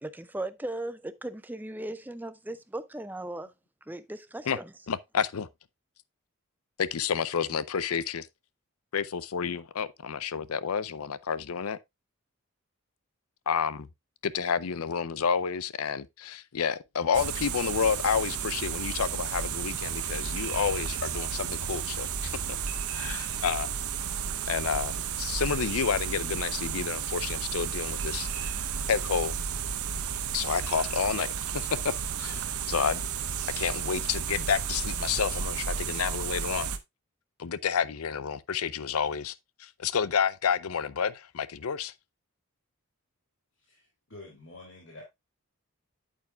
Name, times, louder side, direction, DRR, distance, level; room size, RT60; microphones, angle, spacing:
voice 1, 0.0-3.5 3.9-4.7, right 1 dB, 10° right, 0.4 m, -37 dB
voice 2, 4.9-5.5 6.8-8.3 8.9-11.8 13.5-13.9 14.2-22.6 22.9-23.7 24.5-28.5 28.9-29.3 30.3-33.0 33.6-36.7 37.4-41.9, left 6 dB, 80° left, 0.5 m, -30 dB
sound 1, 17.1-36.8, right 7 dB, 90° right, 0.8 m, -33 dB
Chink clink, 20.4-21.1 22.7-23.6 25.4-26.2 28.0-29.0 30.5-31.2 31.6-31.7, right 7 dB, 70° right, 2.0 m, -46 dB
voice 3, 43.7-45.0, left 2 dB, 55° left, 2.7 m, -48 dB
8.8 x 8.3 x 2.3 m
head